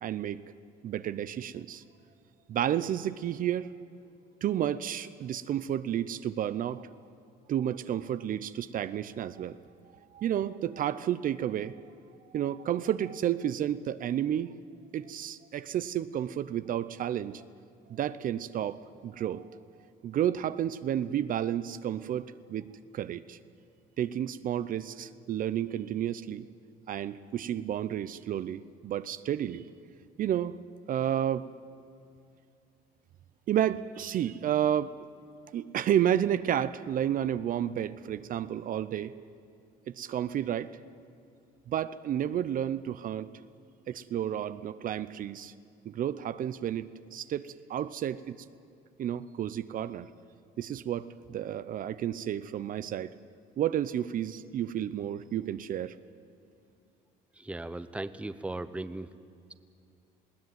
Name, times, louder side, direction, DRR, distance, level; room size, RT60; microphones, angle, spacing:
voice 1, 0.0-0.4 0.8-1.8 2.5-3.7 4.4-6.9 7.5-9.6 10.1-11.7 12.3-14.5 14.9-17.4 17.9-19.5 20.0-22.2 22.5-22.7 22.9-23.4 24.0-26.4 26.9-29.6 30.2-30.5 30.9-31.5 33.5-34.9 35.5-39.1 39.9-40.7 41.7-43.3 43.9-45.5 45.9-48.4 49.0-50.1 50.6-53.1 53.6-55.9, right 10 dB, 55° right, 14 dB, 0.6 m, -31 dB
voice 2, 57.4-59.1, right 2 dB, 5° right, 12 dB, 0.7 m, -37 dB
20.5 x 17.0 x 9.4 m, 2.5 s
cardioid pair, 110°, 17 cm